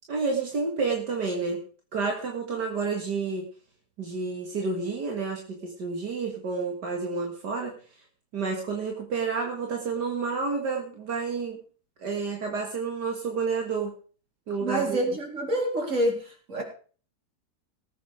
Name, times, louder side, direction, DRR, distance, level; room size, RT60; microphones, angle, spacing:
voice 1, 0.1-1.6 1.9-3.5 4.0-7.8 8.3-11.6 12.0-13.9 14.5-15.0, right 4 dB, 70° right, 2.5 m, -30 dB
voice 2, 14.6-16.6, right 1 dB, 45° right, 4.1 m, -27 dB
18.5 x 8.4 x 5.0 m
omnidirectional pair, 1.8 m